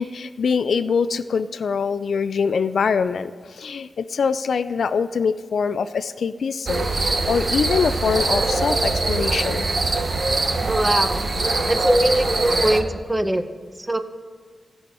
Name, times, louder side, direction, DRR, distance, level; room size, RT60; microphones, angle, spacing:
voice 1, 0.0-9.7, left 5 dB, 80° left, 12 dB, 0.3 m, -24 dB
sound 1, 6.7-12.8, right 2 dB, 55° right, 0.9 m, -22 dB
voice 2, 10.6-11.3 11.7-13.4 13.8-14.0, right 1 dB, 15° right, 9 dB, 0.8 m, -21 dB
16.0 x 5.5 x 4.6 m, 1.5 s
cardioid pair, 60°, 0 cm